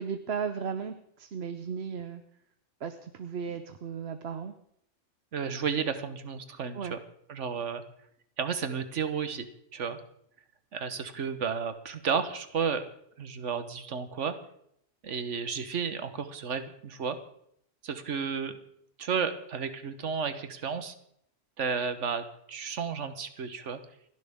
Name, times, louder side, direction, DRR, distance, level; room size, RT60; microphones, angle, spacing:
voice 1, 0.0-2.2 2.8-4.5 6.7-6.9, right 6 dB, 65° right, 9 dB, 1.1 m, -35 dB
voice 2, 5.3-7.0 7.3-7.8 8.4-9.5 9.7-10.0 10.7-12.9 13.2-14.3 15.0-17.2 17.8-18.6 19.0-20.9 21.6-23.8, right 6 dB, 80° right, 10 dB, 1.5 m, -32 dB
29.0 x 11.0 x 3.6 m, 0.72 s
omnidirectional pair, 1.2 m